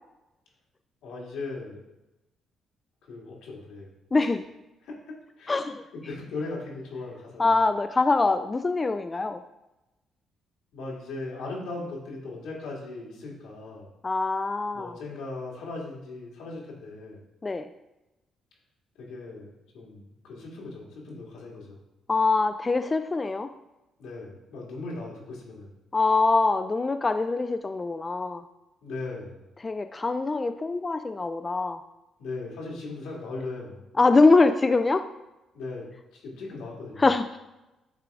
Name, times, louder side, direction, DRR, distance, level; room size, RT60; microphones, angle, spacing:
voice 1, 1.0-1.8 3.0-3.9 4.8-5.5 5.9-7.5 10.7-13.9 14.7-17.2 19.0-21.8 24.0-25.7 28.8-29.4 32.2-33.9 35.5-35.8 36.1-37.1, left 3 dB, 85° left, -3 dB, 1.9 m, -38 dB
voice 2, 4.1-4.4 5.5-5.8 7.4-9.4 14.0-14.9 17.4-17.7 22.1-23.5 25.9-28.4 29.6-31.8 34.0-35.0 37.0-37.4, left 3 dB, 25° left, 9 dB, 0.3 m, -23 dB
8.8 x 3.8 x 3.5 m, 0.97 s
cardioid pair, 90°, 0 cm